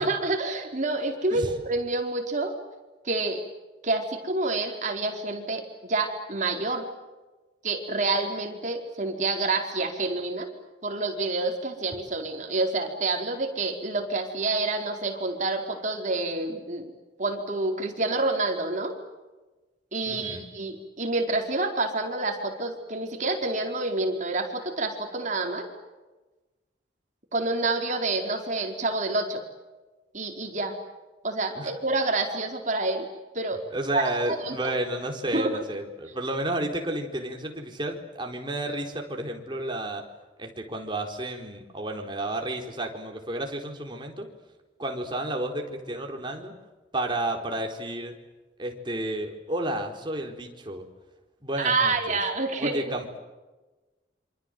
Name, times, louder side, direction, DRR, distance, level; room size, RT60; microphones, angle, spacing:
voice 1, 0.0-2.5 3.0-3.4 3.8-6.9 7.6-10.5 10.8-16.9 17.2-19.0 19.9-25.7 27.3-29.4 30.1-30.8 31.2-33.1 33.3-33.6 33.9-34.0 34.4-34.7 35.3-35.6 51.6-52.8, right 2 dB, 45° right, 3 dB, 4.6 m, -28 dB
voice 2, 20.1-20.5 31.5-31.7 33.7-40.0 40.4-44.3 44.8-46.5 46.9-48.1 48.6-50.9 51.4-52.2 52.6-53.2, right 1 dB, 25° right, 2 dB, 4.2 m, -31 dB
27.0 x 26.0 x 7.9 m, 1.2 s
head